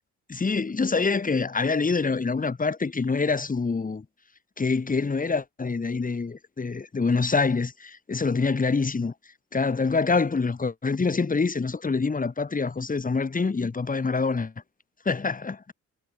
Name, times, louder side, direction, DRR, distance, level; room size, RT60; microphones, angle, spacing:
voice 1, 0.3-4.1 4.6-9.1 9.5-14.5 15.1-15.7, left 4 dB, 25° left, 3.8 m, -25 dB
cardioid pair, 90°, 30 cm